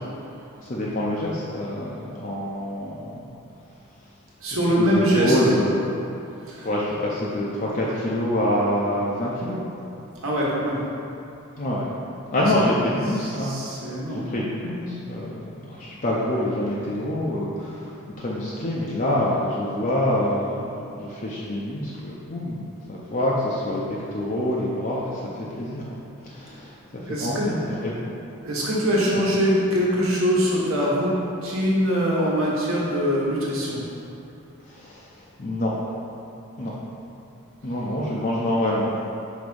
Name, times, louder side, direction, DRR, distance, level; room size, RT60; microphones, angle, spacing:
voice 1, 0.6-3.3 4.7-5.9 6.6-9.6 11.6-11.9 12.3-13.5 14.1-22.6 22.9-26.0 26.2-26.8 27.1-27.9 34.7-35.7 36.6-36.7 37.6-38.9, left 1 dB, 35° left, -6 dB, 0.6 m, -26 dB
voice 2, 4.4-5.4 6.5-6.7 10.2-10.8 12.3-12.4 13.2-14.2 27.0-27.5 28.4-31.2 31.4-33.8, equal, 65° right, -5 dB, 1.3 m, -23 dB
5.1 x 3.5 x 5.3 m, 2.8 s
head